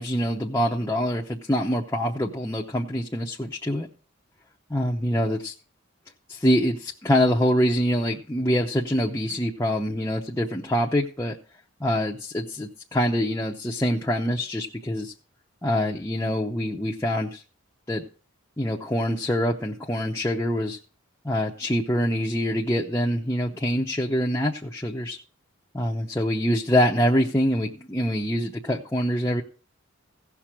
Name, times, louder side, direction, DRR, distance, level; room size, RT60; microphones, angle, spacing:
voice 1, 0.0-3.9 4.7-5.5 6.3-11.4 11.8-15.1 15.6-17.4 17.9-18.0 18.6-20.8 21.2-25.2 25.7-29.4, equal, 15° left, -2 dB, 0.7 m, -25 dB
16.0 x 6.0 x 4.9 m, 0.39 s
head